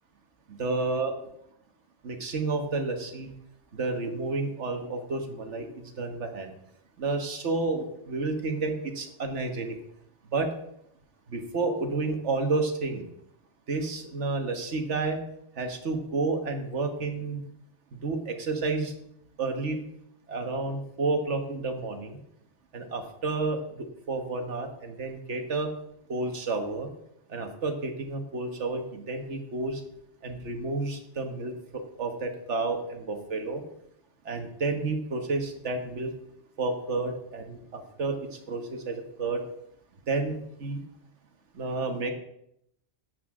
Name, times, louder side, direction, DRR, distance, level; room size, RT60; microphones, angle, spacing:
voice 1, 0.5-1.1 2.0-3.3 3.7-6.5 7.0-9.8 10.3-10.5 11.3-13.0 13.7-15.2 15.6-17.4 18.0-18.9 19.4-19.8 20.3-22.2 22.7-25.7 26.1-26.9 27.3-29.8 30.2-33.6 34.3-36.1 36.6-38.2 38.5-39.4 40.1-40.8 41.5-42.1, right 3 dB, 75° right, 5 dB, 1.6 m, -30 dB
12.5 x 8.3 x 3.7 m, 0.76 s
omnidirectional pair, 1.2 m